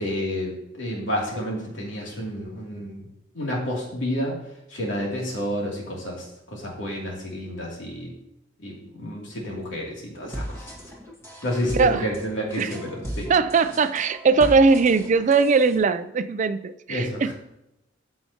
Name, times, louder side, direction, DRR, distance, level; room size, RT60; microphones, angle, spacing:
voice 1, 0.0-3.0 3.3-4.4 4.7-8.1 8.6-10.7 11.4-13.3 16.9-17.3, equal, 80° left, -2 dB, 2.6 m, -30 dB
sound 1, 10.2-15.8, equal, 15° left, 1.7 m, -36 dB
voice 2, 13.3-17.3, right 4 dB, 40° right, 12 dB, 0.4 m, -20 dB
14.0 x 5.7 x 2.8 m, 0.85 s
head